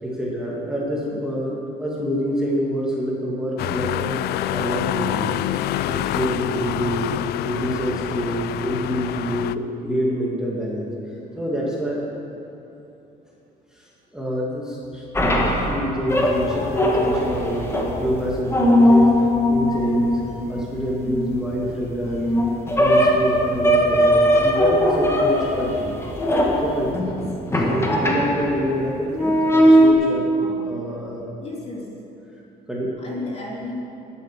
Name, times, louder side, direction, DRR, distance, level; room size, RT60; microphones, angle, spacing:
voice 1, 0.0-5.4 5.9-7.2 7.4-12.0 13.7-17.7 18.0-20.1 20.5-22.3 22.8-26.9 27.4-31.3 32.7-32.9, equal, 5° right, -5 dB, 2.2 m, -27 dB
sound 1, 3.6-9.5, left 13 dB, 70° left, 0.4 m, -26 dB
sound 2, 15.2-28.7 29.1-29.9, equal, 15° left, 1.8 m, -19 dB
voice 2, 27.0-27.3 30.4-30.8 31.4-31.9 33.0-33.7, left 2 dB, 35° left, -3 dB, 2.9 m, -34 dB
11.0 x 7.8 x 7.4 m, 2.9 s
cardioid pair, 110°, 17 cm